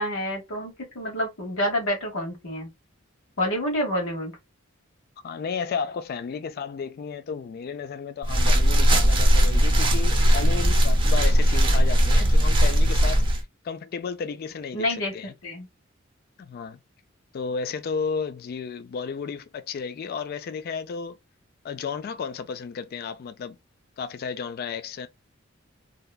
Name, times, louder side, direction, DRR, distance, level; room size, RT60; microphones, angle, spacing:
voice 1, 0.0-2.7 3.4-4.3 14.7-15.1 15.4-15.7, left 1 dB, 75° left, 1.2 m, -28 dB
voice 2, 5.2-13.2 13.6-14.9 15.1-15.3 16.4-16.8 17.3-21.2 21.6-23.6 24.0-25.1, left 5 dB, 50° left, 0.3 m, -33 dB
sound 1, 8.2-13.4, equal, 25° right, 0.6 m, -19 dB
2.8 x 2.2 x 2.2 m
head